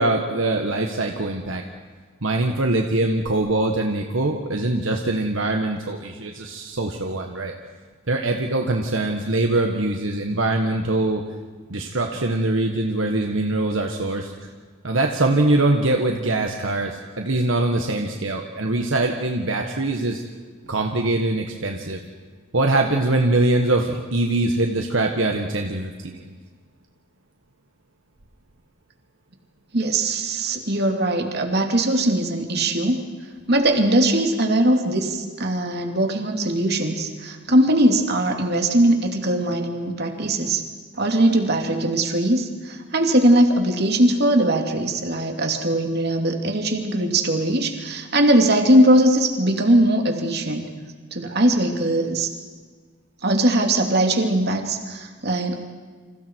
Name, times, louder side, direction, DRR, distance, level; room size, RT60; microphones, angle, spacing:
voice 1, 0.0-1.6 2.2-7.5 8.1-11.2 11.7-14.3 14.8-20.2 20.7-22.0 22.5-26.3, right 2 dB, 70° right, 3 dB, 1.6 m, -23 dB
voice 2, 29.7-33.0 33.5-40.6 41.0-50.7 51.1-52.3 53.2-55.6, right 1 dB, 50° right, 4 dB, 2.6 m, -20 dB
29.5 x 27.0 x 4.7 m, 1.5 s
head